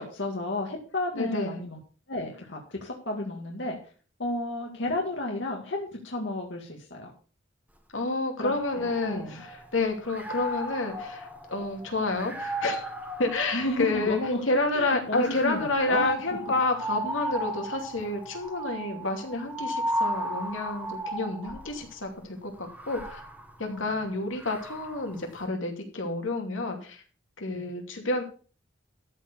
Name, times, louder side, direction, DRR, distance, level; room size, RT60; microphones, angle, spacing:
voice 1, 0.0-1.8 2.1-3.8 4.2-7.1 8.4-9.4 13.5-14.4 14.7-16.1 23.7-23.8 27.5-27.7, left 1 dB, 65° left, 0 dB, 2.0 m, -32 dB
voice 2, 1.1-1.5 7.9-12.9 13.2-23.2 23.6-27.0 27.4-28.2, left 2 dB, 80° left, 3 dB, 2.6 m, -29 dB
sound 1, 8.5-9.7 10.0-14.4 15.1-21.8 22.6-25.2, right 1 dB, 5° right, 1.5 m, -35 dB
13.5 x 4.7 x 6.8 m, 0.39 s
head